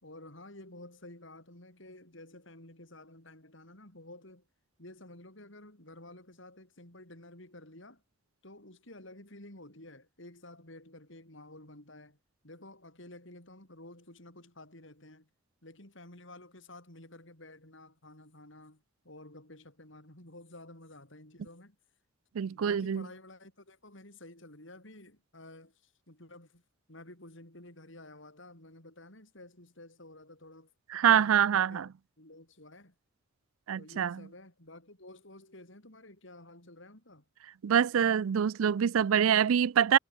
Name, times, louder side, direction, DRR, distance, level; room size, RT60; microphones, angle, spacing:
voice 1, 0.0-4.5 4.8-8.0 8.4-12.2 12.4-15.3 15.6-21.8 22.5-26.6 26.9-30.7 31.1-31.9 32.2-32.9 33.8-37.2, left 1 dB, 60° left, 5.6 m, -51 dB
voice 2, 22.4-23.1 30.9-31.9 33.7-34.2 37.6-40.0, right 8 dB, 80° right, 0.4 m, -25 dB
head